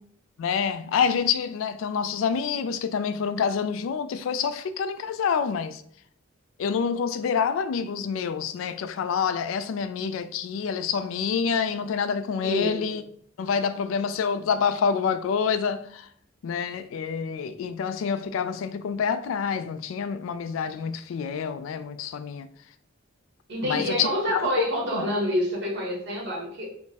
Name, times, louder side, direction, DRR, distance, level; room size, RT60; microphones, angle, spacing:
voice 1, 0.4-5.8 6.6-13.0 13.4-16.1 16.4-22.5 23.6-24.6 24.9-25.0, left 6 dB, 85° left, 0.3 m, -27 dB
voice 2, 12.4-12.9 23.5-26.7, equal, 60° right, 1.3 m, -27 dB
3.5 x 2.1 x 4.0 m
head